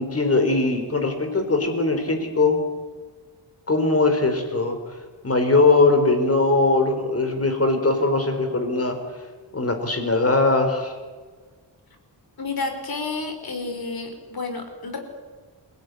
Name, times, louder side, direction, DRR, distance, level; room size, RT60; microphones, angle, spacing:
voice 1, 0.0-2.6 3.7-4.8 5.2-9.0 9.5-10.9, left 3 dB, 30° left, 6 dB, 4.3 m, -20 dB
voice 2, 12.4-15.0, left 3 dB, 55° left, 6 dB, 4.8 m, -30 dB
27.0 x 18.0 x 9.7 m, 1.4 s
wide cardioid pair, 170°, 44 cm